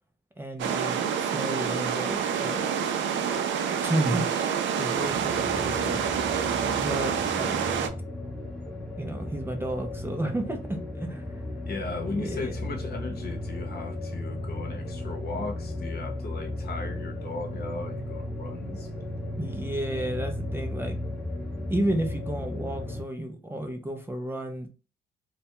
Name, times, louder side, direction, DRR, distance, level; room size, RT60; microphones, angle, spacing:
voice 1, 0.4-2.6 3.8-6.0 6.8-7.6 9.0-11.2 12.1-12.5 19.4-21.0 21.7-24.7, right 1 dB, 10° right, 0.4 m, -32 dB
sound 1, 0.6-7.9, right 7 dB, 70° right, 0.4 m, -27 dB
sound 2, 4.9-23.0, left 1 dB, 5° left, 0.7 m, -35 dB
voice 2, 11.6-19.2, left 3 dB, 50° left, 0.8 m, -37 dB
2.2 x 2.2 x 2.8 m
cardioid pair, 90°, 20 cm